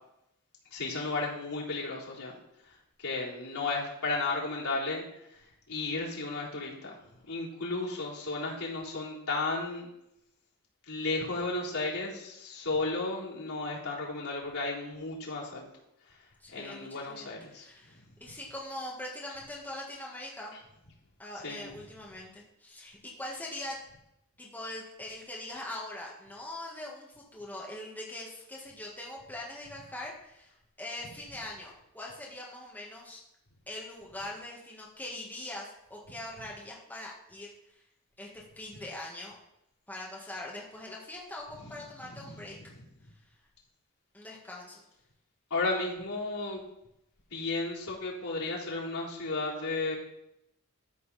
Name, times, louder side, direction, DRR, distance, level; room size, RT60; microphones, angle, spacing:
voice 1, 0.7-2.4 2.6-5.0 5.3-7.0 7.3-9.9 10.9-15.7 16.1-16.2 16.5-18.1 21.4-21.7 41.6-42.7 45.5-46.6 47.3-49.9, left 3 dB, 80° left, -6 dB, 3.7 m, -34 dB
voice 2, 16.4-20.6 21.2-23.8 24.4-33.2 33.7-37.8 38.2-39.4 39.9-42.6 44.1-44.8, left 1 dB, 10° left, -4 dB, 1.8 m, -42 dB
13.0 x 6.2 x 4.3 m, 0.81 s
head